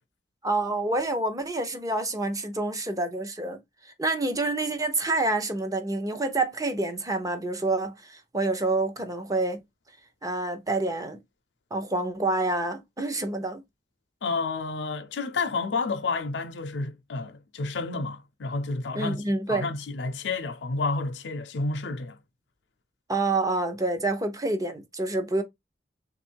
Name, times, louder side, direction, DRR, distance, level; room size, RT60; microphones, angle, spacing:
voice 1, 0.4-3.6 4.0-9.6 10.2-11.2 11.7-13.6 18.9-19.7 23.1-25.4, right 2 dB, 20° right, 0.7 m, -27 dB
voice 2, 14.2-22.2, left 3 dB, 75° left, 0.5 m, -30 dB
3.5 x 2.5 x 4.5 m
head